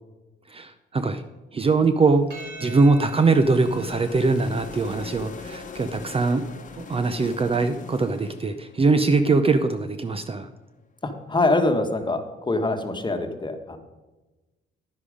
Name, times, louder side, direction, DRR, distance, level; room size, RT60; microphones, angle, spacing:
voice 1, 0.5-1.2 1.5-2.2 2.6-6.5 6.8-10.5, right 3 dB, 30° right, 9 dB, 0.6 m, -22 dB
sound 1, 2.0-10.0, left 5 dB, 40° left, 1.1 m, -42 dB
Percussion, 2.3-6.9, right 1 dB, 60° right, 4.7 m, -44 dB
voice 2, 11.0-13.8, left 2 dB, 25° left, 6 dB, 1.3 m, -24 dB
10.5 x 10.0 x 5.0 m, 1.1 s
cardioid pair, 90°, 20 cm